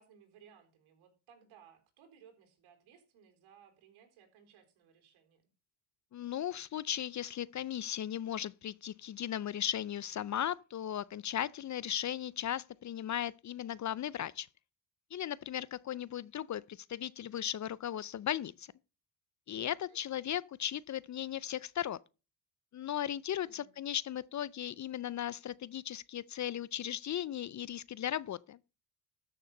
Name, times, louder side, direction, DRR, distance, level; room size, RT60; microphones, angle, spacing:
voice 1, 0.0-5.4 19.9-20.2 23.4-23.8, right 7 dB, 80° right, 4.0 m, -61 dB
voice 2, 6.1-14.5 15.1-18.7 19.5-22.0 22.7-28.6, left 10 dB, 40° left, 0.5 m, -37 dB
13.5 x 6.6 x 5.4 m
cardioid pair, 95°, 48 cm